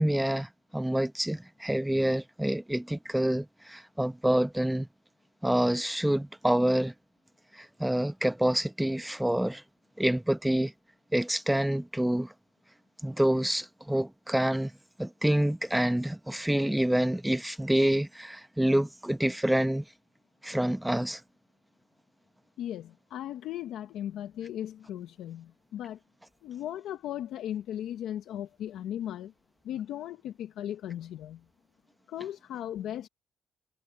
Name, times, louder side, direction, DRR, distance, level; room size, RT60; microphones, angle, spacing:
voice 1, 0.0-4.9 5.4-6.9 7.6-9.6 10.0-10.7 11.1-12.3 13.0-14.7 15.0-19.8 20.4-21.2, right 1 dB, 5° right, 1.1 m, -27 dB
voice 2, 22.6-26.0 26.4-29.3 29.6-31.4 32.1-33.1, left 11 dB, 80° left, 1.0 m, -37 dB
cardioid pair, 90°, 0 cm